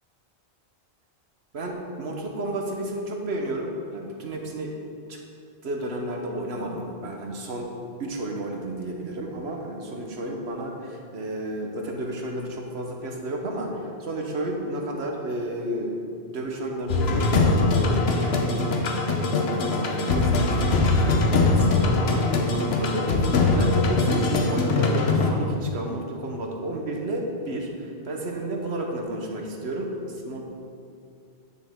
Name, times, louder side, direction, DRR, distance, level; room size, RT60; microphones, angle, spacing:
voice 1, 1.5-4.7 5.1-5.2 5.6-7.7 8.0-16.0 16.3-30.5, right 1 dB, 70° right, 1 dB, 1.3 m, -32 dB
sound 1, 16.9-25.3, left 3 dB, 70° left, 1.0 m, -22 dB
9.6 x 6.2 x 3.6 m, 2.4 s
omnidirectional pair, 1.1 m